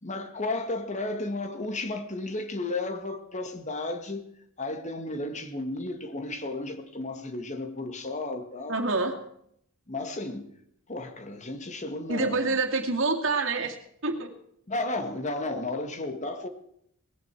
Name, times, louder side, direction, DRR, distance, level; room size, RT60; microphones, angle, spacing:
voice 1, 0.0-4.2 4.6-8.7 9.9-10.5 10.9-12.6 14.7-16.5, left 2 dB, 35° left, 1.8 m, -33 dB
voice 2, 8.7-9.2 12.1-13.8 14.0-14.3, right 3 dB, 65° right, 2.4 m, -27 dB
19.5 x 16.0 x 4.6 m
head